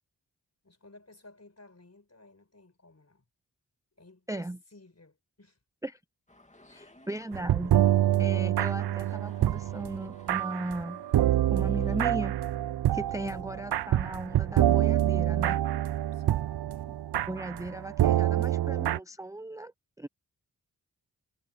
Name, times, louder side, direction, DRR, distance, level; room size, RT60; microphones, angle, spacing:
voice 1, 0.6-3.2 4.0-5.6 6.7-7.1 16.1-16.6, left 2 dB, 40° left, 4.9 m, -56 dB
voice 2, 4.3-4.6 5.8-6.0 6.7-7.8 8.2-11.0 11.5-12.4 12.9-15.6 17.3-19.7 20.0-20.1, right 1 dB, 10° right, 0.6 m, -37 dB
sound 1, 6.3-12.1, left 1 dB, 15° left, 2.4 m, -55 dB
sound 2, 7.3-19.0, right 12 dB, 65° right, 0.5 m, -26 dB
cardioid pair, 40°, 42 cm